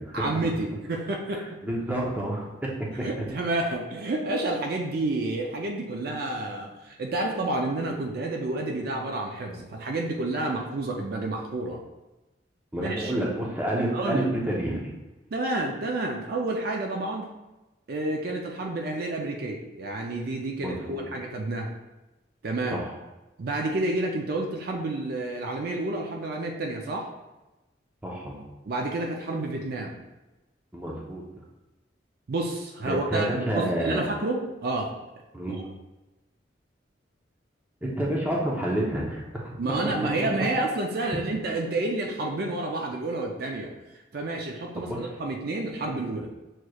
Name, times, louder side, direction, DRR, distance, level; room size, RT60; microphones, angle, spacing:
voice 1, 0.1-1.4 3.0-11.8 12.8-13.1 13.9-14.3 15.3-17.3 17.9-21.7 22.4-22.8 23.4-27.1 28.6-30.0 32.3-34.9 35.5-35.6 39.6-43.7 44.1-46.3, right 2 dB, 55° right, 1 dB, 0.4 m, -29 dB
voice 2, 1.6-2.7 3.0-3.1 12.7-14.9 20.6-21.1 22.7-22.8 28.0-28.4 30.7-31.2 32.9-34.0 35.3-35.6 37.8-39.6 44.8-45.0, right 1 dB, 10° right, -3 dB, 0.6 m, -29 dB
6.3 x 3.0 x 2.3 m, 1.1 s
head